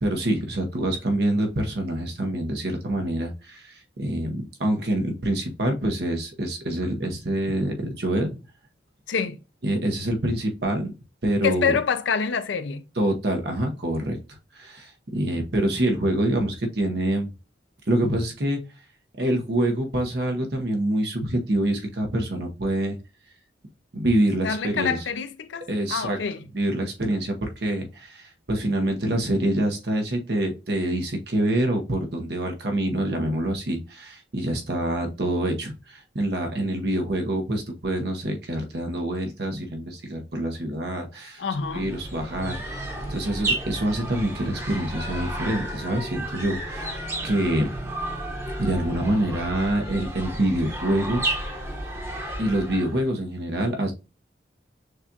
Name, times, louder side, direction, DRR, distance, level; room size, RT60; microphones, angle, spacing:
voice 1, 0.0-8.4 9.6-10.9 11.2-11.7 13.0-14.2 14.6-17.3 17.9-18.6 19.2-23.0 23.9-25.0 25.7-26.2 26.5-41.4 41.7-47.7 48.6-51.2 52.4-53.9, right 1 dB, 60° right, 0.9 m, -26 dB
voice 2, 11.4-12.8 24.4-26.4 41.4-41.9, left 6 dB, 80° left, 0.5 m, -26 dB
sound 1, 41.5-53.1, right 1 dB, 15° right, 1.0 m, -32 dB
6.4 x 2.4 x 2.7 m
head